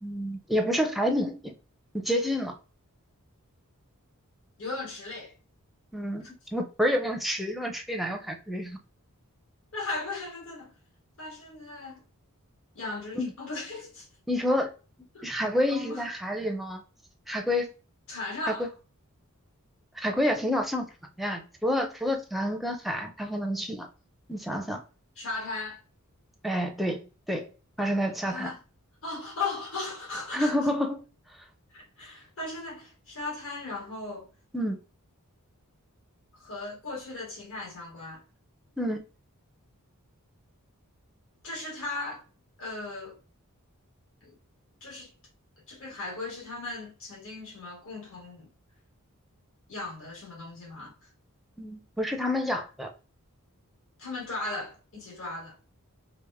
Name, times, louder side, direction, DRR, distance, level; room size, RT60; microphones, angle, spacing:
voice 1, 0.0-1.5 1.9-2.6 5.9-6.2 6.5-8.8 13.1-13.3 14.3-14.7 15.2-16.8 17.3-17.7 18.5-18.7 20.0-20.9 21.2-23.9 24.3-24.8 26.4-27.0 27.3-27.5 27.8-28.5 30.3-31.0 34.5-34.8 38.8-39.0 51.6-52.9, equal, ahead, 0.5 m, -28 dB
voice 2, 4.6-5.3 9.7-10.7 11.2-12.0 12.7-14.1 15.1-15.3 15.7-16.1 18.1-18.7 25.2-25.8 28.3-28.6 29.0-30.5 31.7-34.3 36.3-38.2 41.4-42.2 42.6-43.2 44.2-44.4 44.8-45.1 45.7-48.5 49.7-50.9 54.0-55.6, left 3 dB, 65° left, 1.9 m, -37 dB
3.5 x 2.5 x 3.4 m
head